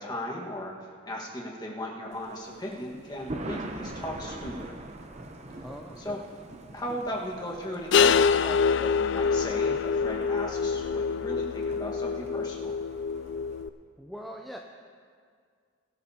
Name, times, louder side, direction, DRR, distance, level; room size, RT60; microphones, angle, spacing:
voice 1, 0.0-4.8 6.0-6.2 6.7-12.7, left 1 dB, 20° left, -2 dB, 1.5 m, -37 dB
Thunder, 2.1-13.6, right 2 dB, 30° right, 0.7 m, -44 dB
voice 2, 5.6-6.2 14.0-14.6, equal, ahead, 0 dB, 0.5 m, -42 dB
sound 1, 7.9-13.7, left 6 dB, 55° left, 0.3 m, -25 dB
22.0 x 11.5 x 2.8 m, 2.1 s
head